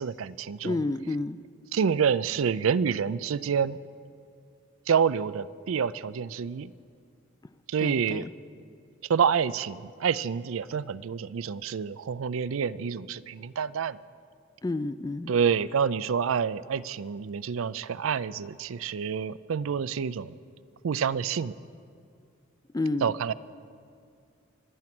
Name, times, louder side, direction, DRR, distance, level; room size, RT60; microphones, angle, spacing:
voice 1, 0.0-0.8 1.7-3.8 4.9-6.7 7.7-8.3 9.1-14.0 15.3-20.3 20.8-21.5 23.0-23.3, right 7 dB, 80° right, 17 dB, 0.4 m, -28 dB
voice 2, 0.6-1.4 7.8-8.3 14.6-15.3 22.7-23.1, left 2 dB, 20° left, 14 dB, 0.3 m, -30 dB
25.0 x 9.6 x 6.0 m, 2.3 s
head